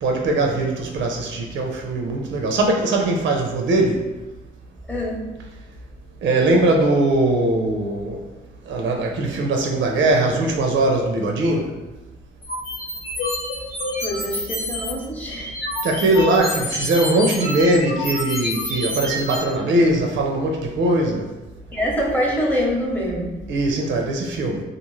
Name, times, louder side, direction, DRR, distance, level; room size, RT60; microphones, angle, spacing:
voice 1, 0.0-4.0 6.2-8.2 8.7-11.7 15.8-21.2 23.5-24.6, right 2 dB, 70° right, 1 dB, 0.5 m, -20 dB
voice 2, 4.9-5.2 14.0-15.6 21.7-23.3, equal, 10° left, -3 dB, 0.7 m, -24 dB
sound 1, 12.4-14.9 15.3-19.4, left 1 dB, 55° left, 0.8 m, -28 dB
2.5 x 2.4 x 3.0 m, 1.1 s
cardioid pair, 90°, 20 cm